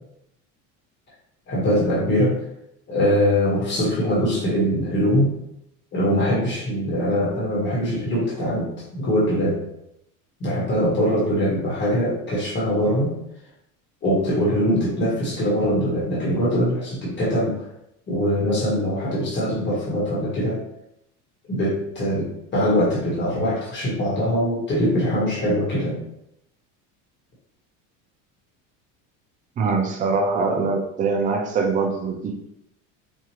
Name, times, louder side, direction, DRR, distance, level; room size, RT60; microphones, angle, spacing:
voice 1, 1.5-2.3 2.9-5.4 5.9-9.6 10.4-13.2 14.0-17.6 18.1-20.6 21.5-26.0, equal, 30° left, -5 dB, 1.3 m, -22 dB
voice 2, 29.6-32.4, right 4 dB, 20° right, 3 dB, 0.3 m, -23 dB
4.5 x 2.4 x 2.9 m, 0.78 s
cardioid pair, 155°, 38 cm